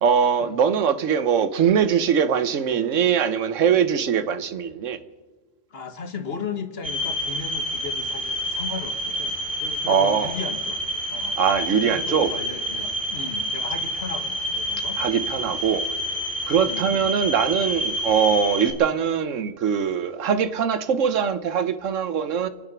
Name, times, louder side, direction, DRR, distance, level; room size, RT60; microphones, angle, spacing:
voice 1, 0.0-5.0 9.9-10.3 11.4-12.3 15.0-15.8 16.5-22.5, right 7 dB, 80° right, 1.2 m, -22 dB
voice 2, 5.7-10.8 11.1-11.4 11.7-15.3 16.6-16.9, left 5 dB, 55° left, 1.4 m, -36 dB
sound 1, 6.8-18.7, equal, 35° right, 3.7 m, -28 dB
26.5 x 9.0 x 6.0 m
omnidirectional pair, 1.3 m